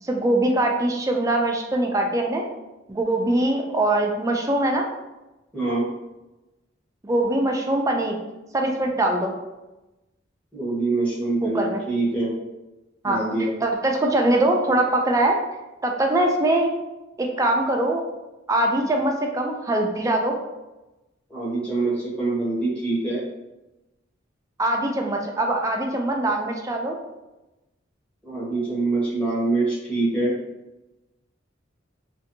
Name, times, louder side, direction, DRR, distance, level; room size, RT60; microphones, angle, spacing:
voice 1, 0.0-2.4 2.9-4.9 7.0-8.2 8.5-9.3 11.4-11.8 13.0-15.4 15.8-16.7 17.2-18.0 18.5-20.4 24.6-27.0, right 1 dB, 15° right, 1 dB, 0.3 m, -22 dB
voice 2, 5.5-5.8 10.5-12.3 13.0-13.5 21.3-23.2 28.2-30.3, right 2 dB, 5° left, -8 dB, 1.0 m, -24 dB
2.6 x 2.5 x 2.6 m, 1.0 s
head